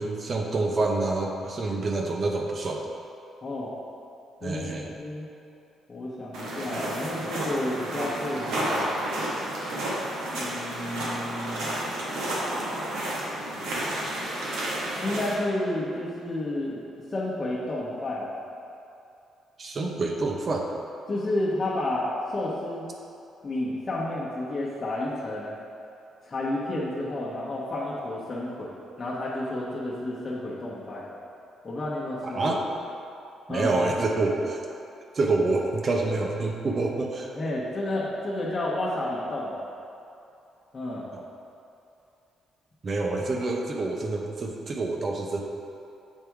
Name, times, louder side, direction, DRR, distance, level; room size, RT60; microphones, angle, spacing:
voice 1, 0.0-2.8 4.4-4.9 19.6-20.7 32.2-32.6 33.5-34.6 35.1-37.3 41.1-41.2 42.8-45.4, right 3 dB, 45° right, 1 dB, 0.8 m, -27 dB
voice 2, 3.4-3.7 4.4-5.3 5.9-8.9 10.4-11.9 14.9-16.8 17.1-18.4 21.1-22.8 23.4-25.6 26.2-31.1 31.6-32.6 33.5-33.7 37.3-39.7 40.7-41.1, left 1 dB, 30° left, -8 dB, 1.1 m, -31 dB
sound 1, 6.3-15.3, right 1 dB, 90° right, 1.2 m, -31 dB
7.4 x 3.4 x 4.6 m, 2.7 s
cardioid pair, 90°, 0 cm